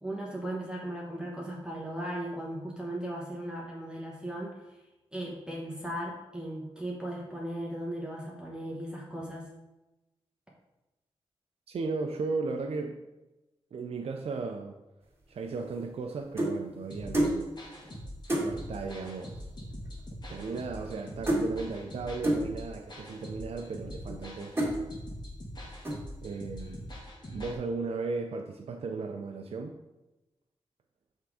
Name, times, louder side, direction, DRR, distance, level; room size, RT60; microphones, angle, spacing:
voice 1, 0.0-4.8 5.1-9.5, right 1 dB, 10° right, 1.1 m, -37 dB
voice 2, 11.7-13.0 13.7-14.8 15.3-17.6 18.4-19.5 20.3-24.6 26.2-26.9 27.3-29.8, right 4 dB, 70° right, 0.4 m, -36 dB
sound 1, 15.4-16.6 17.1-17.4 17.8-17.9 18.3-18.5 19.4-19.5 19.7-20.0 20.3-21.0 21.3-21.5 22.2-22.5 23.2-23.3 23.8-24.2 24.6-24.8 25.3-25.5 25.8-26.2, right 1 dB, 25° right, 2.1 m, -29 dB
sound 2, 16.9-27.6, equal, 40° left, 1.6 m, -43 dB
5.9 x 3.6 x 4.8 m
cardioid pair, 70°, 11 cm